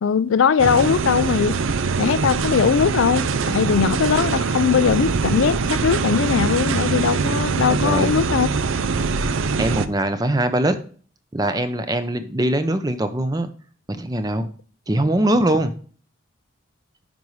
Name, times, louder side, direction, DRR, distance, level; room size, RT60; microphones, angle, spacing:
voice 1, 0.0-1.5 2.0-8.5, left 6 dB, 80° left, 0.4 m, -20 dB
sound 1, 0.6-9.9, right 4 dB, 80° right, 0.5 m, -23 dB
voice 2, 7.8-8.2 9.5-10.8 11.3-13.5 13.9-14.5 14.9-15.7, right 1 dB, 20° right, 0.6 m, -22 dB
10.5 x 5.3 x 3.1 m
head